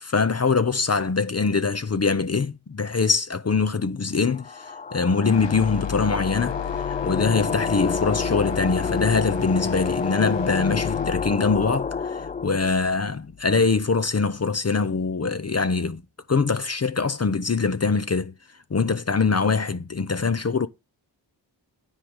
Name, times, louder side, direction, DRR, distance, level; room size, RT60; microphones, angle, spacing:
voice 1, 0.0-16.0 16.3-18.3 18.7-20.7, left 4 dB, 35° left, 0.8 m, -23 dB
sound 1, 4.3-12.7, left 5 dB, 20° left, 0.4 m, -29 dB
sound 2, 5.3-13.4, left 8 dB, 70° left, 0.8 m, -33 dB
9.9 x 3.8 x 7.2 m
cardioid pair, 45°, 45 cm